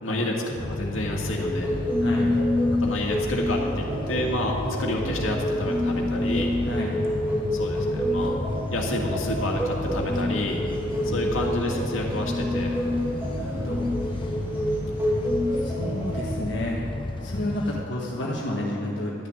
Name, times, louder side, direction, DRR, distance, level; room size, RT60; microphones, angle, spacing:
voice 1, 0.0-1.7 2.8-6.5 7.5-8.4 8.7-10.6 11.0-12.7, left 1 dB, 90° left, 0 dB, 2.0 m, -29 dB
sound 1, 0.6-17.8, left 1 dB, 25° left, 0.6 m, -33 dB
sound 2, 1.3-16.4, left 1 dB, 10° right, 2.0 m, -28 dB
voice 2, 2.0-2.3 6.6-7.0 11.0-11.2 13.3-13.9 15.5-16.8 17.2-19.3, left 1 dB, 65° left, -3 dB, 1.5 m, -31 dB
12.5 x 6.7 x 9.6 m, 2.7 s
head